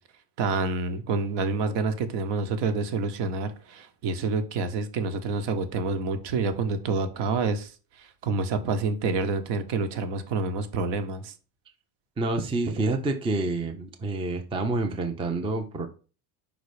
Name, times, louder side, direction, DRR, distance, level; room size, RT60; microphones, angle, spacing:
voice 1, 0.4-7.7 8.0-11.3, right 4 dB, 65° right, 8 dB, 1.2 m, -28 dB
voice 2, 12.2-15.9, right 2 dB, 10° right, 5 dB, 0.5 m, -28 dB
5.3 x 3.9 x 4.9 m, 0.35 s
cardioid pair, 160°, 46 cm